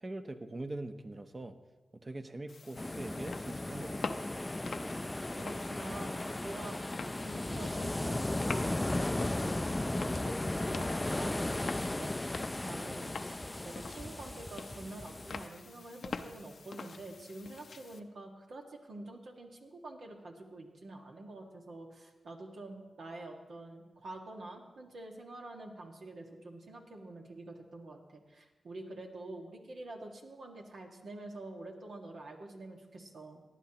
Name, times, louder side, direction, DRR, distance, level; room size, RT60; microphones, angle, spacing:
voice 1, 0.0-1.5 2.0-4.2, right 2 dB, 40° right, 8 dB, 0.9 m, -42 dB
sound 1, 2.5-18.0, left 4 dB, 75° left, 0.6 m, -46 dB
sound 2, 2.8-15.5, left 1 dB, 25° left, 0.4 m, -36 dB
voice 2, 5.4-6.1 6.4-6.8 7.2-13.1 13.6-33.4, right 2 dB, 80° right, 1 dB, 1.7 m, -47 dB
18.0 x 11.0 x 2.9 m, 1.3 s
cardioid pair, 40°, 0 cm